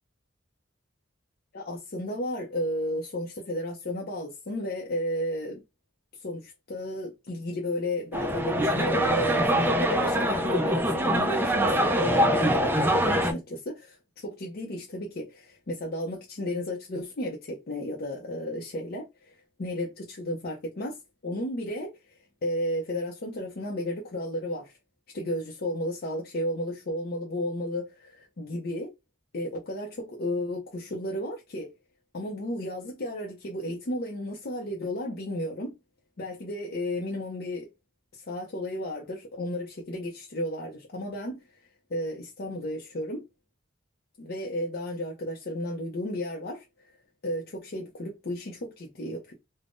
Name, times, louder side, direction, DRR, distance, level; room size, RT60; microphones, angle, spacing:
voice 1, 1.5-5.6 6.2-21.0 21.2-24.8 25.1-28.9 29.3-31.7 32.1-35.7 36.2-37.7 38.1-41.4 41.9-43.2 44.2-46.6 47.2-49.3, left 1 dB, 50° left, 0.5 m, -33 dB
sound 1, 8.1-13.3, equal, 10° right, 0.4 m, -24 dB
3.4 x 2.0 x 2.5 m
head